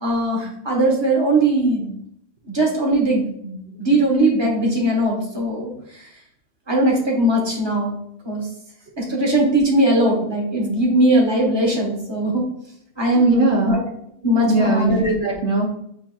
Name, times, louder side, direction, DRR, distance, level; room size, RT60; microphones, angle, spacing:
voice 1, 0.0-1.9 2.5-6.0 6.7-7.9 8.2-8.5 9.0-12.5 13.0-13.8 14.2-15.0, right 1 dB, 20° right, -2 dB, 1.2 m, -19 dB
voice 2, 13.1-13.8 14.4-15.7, right 3 dB, 60° right, -2 dB, 1.0 m, -20 dB
7.7 x 2.8 x 2.3 m, 0.73 s
omnidirectional pair, 1.4 m